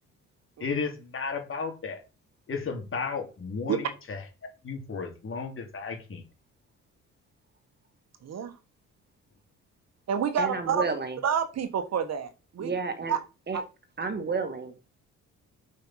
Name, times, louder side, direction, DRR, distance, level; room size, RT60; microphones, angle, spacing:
voice 1, 0.6-2.0 2.5-6.2, left 5 dB, 45° left, 4 dB, 3.0 m, -34 dB
voice 2, 8.2-8.6 10.1-10.8 11.2-12.7 13.1-13.2 13.5-13.6, right 7 dB, 60° right, 10 dB, 1.5 m, -28 dB
voice 3, 10.4-11.2 12.6-13.1 13.5-13.6 14.0-14.7, right 4 dB, 35° right, 8 dB, 2.1 m, -30 dB
6.7 x 5.5 x 5.7 m, 0.30 s
cardioid pair, 90°, 30 cm